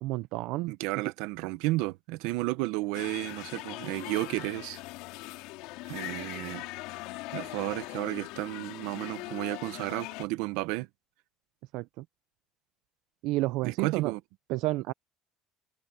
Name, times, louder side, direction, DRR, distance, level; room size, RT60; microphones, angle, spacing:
voice 1, 0.0-0.7 11.7-12.0 13.2-14.1 14.5-14.9, right 19 dB, 65° right, 0.4 m, -30 dB
voice 2, 0.7-4.8 5.9-6.7 7.3-10.9 13.6-14.2, right 20 dB, 85° right, 0.9 m, -32 dB
sound 1, 2.9-10.2, left 20 dB, 80° left, 3.5 m, -41 dB
cardioid pair, 180°, 0 cm